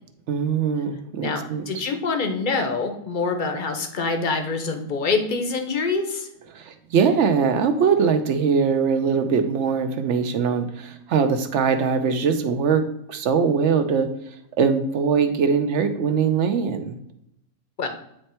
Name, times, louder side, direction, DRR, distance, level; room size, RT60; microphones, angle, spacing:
voice 1, 0.3-1.6 6.5-14.1 14.6-17.0, right 6 dB, 65° right, 8 dB, 0.9 m, -22 dB
voice 2, 1.2-6.3 17.8-17.9, left 4 dB, 45° left, 6 dB, 0.8 m, -25 dB
8.9 x 3.3 x 4.3 m, 0.79 s
omnidirectional pair, 1.5 m